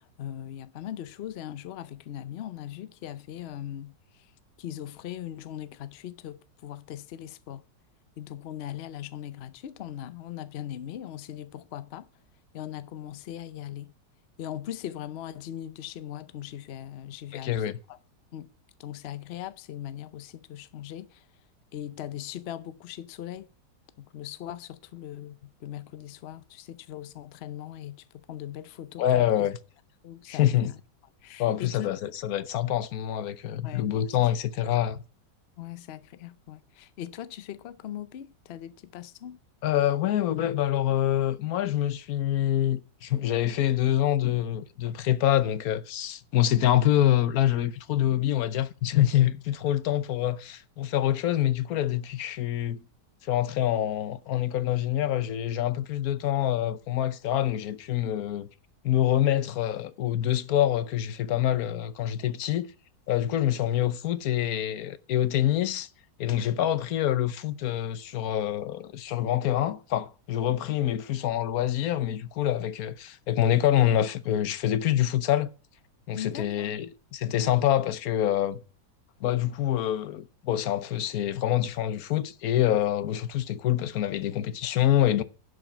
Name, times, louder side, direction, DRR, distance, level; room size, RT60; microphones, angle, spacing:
voice 1, 0.0-4.3 4.6-7.6 8.2-12.1 12.5-13.9 14.4-17.5 17.9-18.0 18.3-18.5 18.8-21.3 21.7-23.5 24.0-29.5 30.0-30.8 31.2-31.9 33.6-34.2 35.6-39.4 76.1-76.8, left 11 dB, 90° left, 0.5 m, -40 dB
voice 2, 17.4-17.7 29.0-29.6 30.3-30.7 31.4-35.0 39.6-52.8 53.3-58.5 58.8-62.7 63.1-65.9 66.2-75.5 76.1-78.6 79.2-85.2, left 12 dB, 65° left, 1.0 m, -26 dB
11.0 x 5.1 x 7.1 m
omnidirectional pair, 1.9 m